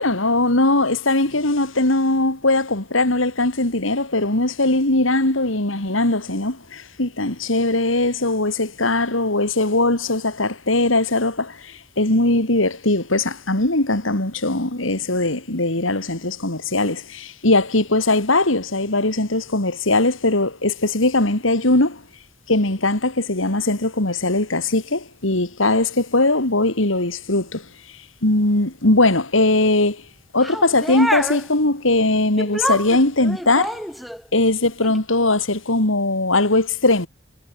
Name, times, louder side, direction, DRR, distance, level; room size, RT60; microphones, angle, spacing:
voice 1, 0.0-22.0 22.5-27.7 28.2-30.0 30.3-33.8 34.3-37.1, left 2 dB, 85° left, 3.7 m, -20 dB
sound 1, 30.4-31.5 32.4-34.3 34.8-35.0, equal, ahead, 4.9 m, -27 dB
head